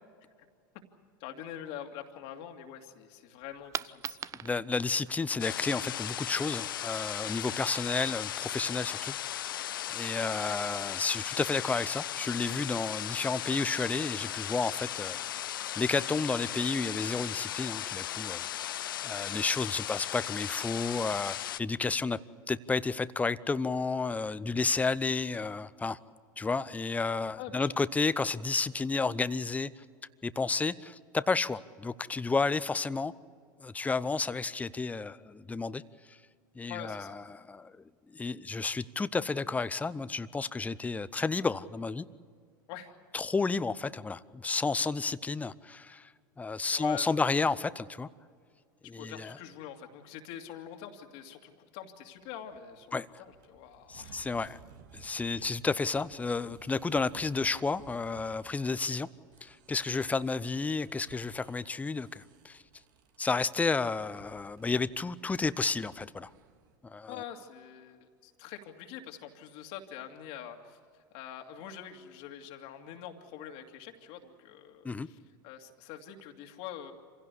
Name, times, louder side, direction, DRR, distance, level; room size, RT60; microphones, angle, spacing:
voice 1, 1.2-4.5 18.9-19.1 27.4-27.7 36.7-37.2 42.7-42.9 46.7-47.3 49.0-52.9 53.2-54.2 55.3-55.6 67.1-70.8 71.1-76.9, left 9 dB, 60° left, 4 dB, 2.4 m, -45 dB
Coin (dropping), 3.4-9.4, right 8 dB, 30° right, 0.5 m, -46 dB
voice 2, 4.4-9.6 9.9-18.5 19.0-22.2 22.5-26.0 26.4-29.8 30.2-33.1 33.6-35.8 36.1-36.2 36.6-42.1 43.1-46.1 46.4-48.1 48.8-49.3 52.9-53.1 53.9-54.6 54.9-59.1 59.4-62.6 63.2-66.3 66.8-67.2 74.8-75.1, left 4 dB, 15° left, 16 dB, 0.7 m, -31 dB
sound 1, 5.4-21.6, left 12 dB, 85° left, 0.5 m, -37 dB
sound 2, 52.1-66.8, right 5 dB, 70° right, 2.0 m, -58 dB
26.0 x 16.5 x 8.3 m, 2.1 s
hypercardioid pair, 90°, 11 cm